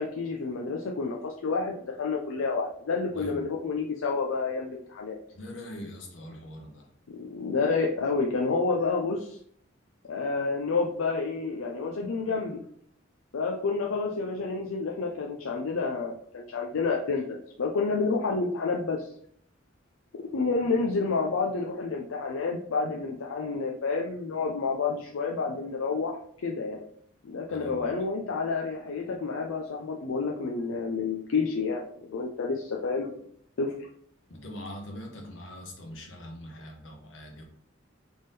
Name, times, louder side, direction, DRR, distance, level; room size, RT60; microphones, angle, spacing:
voice 1, 0.0-5.2 7.1-9.4 10.1-12.6 13.3-19.1 20.3-26.8 27.2-33.2 33.6-33.7, left 4 dB, 90° left, 0 dB, 0.5 m, -29 dB
voice 2, 3.2-3.5 5.3-6.9 27.5-27.9 34.3-37.4, left 1 dB, 70° left, 1 dB, 1.1 m, -42 dB
3.5 x 3.5 x 4.1 m, 0.65 s
head